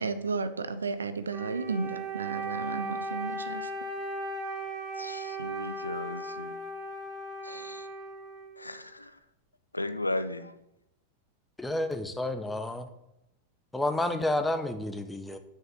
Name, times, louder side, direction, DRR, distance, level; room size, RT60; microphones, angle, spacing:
voice 1, 0.0-3.7, right 4 dB, 75° right, 0.6 m, -33 dB
Wind instrument woodwind instrument, 1.3-8.8, right 1 dB, 30° right, 1.6 m, -37 dB
voice 2, 5.0-6.5 7.4-7.9 8.6-9.1 9.7-10.5, left 2 dB, 85° left, 0.6 m, -35 dB
voice 3, 11.6-12.9 13.7-15.4, left 1 dB, 5° left, 1.0 m, -30 dB
6.6 x 6.5 x 7.0 m
figure-of-eight pair, 90°, 0 cm